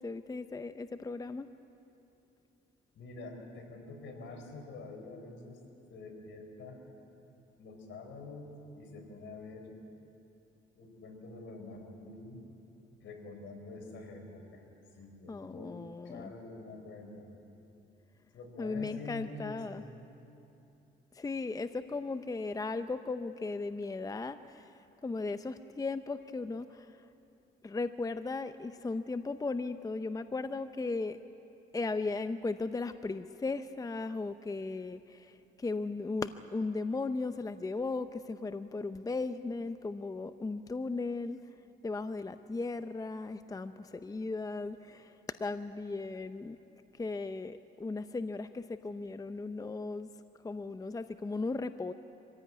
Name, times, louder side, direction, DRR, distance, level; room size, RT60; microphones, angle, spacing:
voice 1, 0.0-1.5 15.3-16.3 18.6-19.8 21.1-24.7 25.0-26.9 27.6-31.2 31.7-41.4 41.8-46.6 47.0-50.1 50.4-51.9, left 3 dB, 20° left, 11 dB, 0.6 m, -36 dB
voice 2, 2.9-5.6 5.9-6.8 7.6-9.7 10.8-12.4 13.0-14.7 14.9-17.3 18.3-19.9 21.9-22.0, left 3 dB, 70° left, 3 dB, 4.2 m, -47 dB
24.5 x 16.0 x 9.6 m, 2.8 s
cardioid pair, 90°, 20 cm